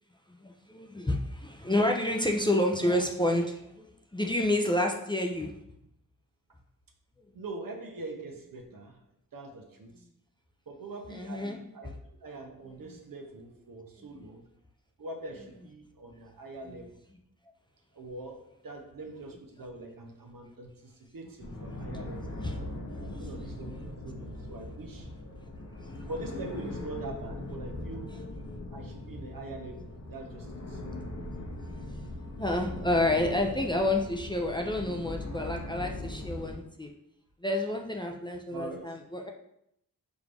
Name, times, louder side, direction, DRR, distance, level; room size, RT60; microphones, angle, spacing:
voice 1, 0.3-5.5 11.1-11.6 14.0-14.1 16.8-16.9 22.4-23.2 28.1-28.2 31.6-31.8 32.4-36.9 37.4-39.3, left 1 dB, 15° left, 1 dB, 0.4 m, -29 dB
voice 2, 7.3-9.0 9.3-10.1 10.7-11.9 12.2-14.5 15.0-16.9 17.9-22.4 23.0-25.1 26.1-28.3 28.7-30.8 38.5-39.0, right 2 dB, 70° right, 3 dB, 0.8 m, -43 dB
sound 1, 21.4-36.6, left 1 dB, 45° left, 0.8 m, -40 dB
4.9 x 2.6 x 3.3 m, 0.76 s
wide cardioid pair, 75°, 35 cm